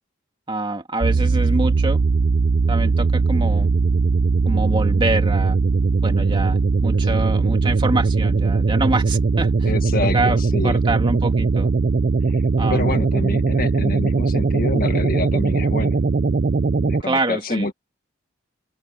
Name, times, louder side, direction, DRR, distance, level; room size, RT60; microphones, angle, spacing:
voice 1, 0.5-2.0 2.7-3.7 4.4-5.6 6.0-9.7 10.1-11.7 12.6-13.0 17.0-17.7, right 2 dB, 25° right, 2.6 m, -25 dB
sound 1, 1.0-17.0, right 4 dB, 45° right, 0.4 m, -19 dB
voice 2, 9.7-10.8 12.3-12.4 12.7-16.0 16.8-17.7, left 2 dB, 45° left, 1.8 m, -27 dB
open air
head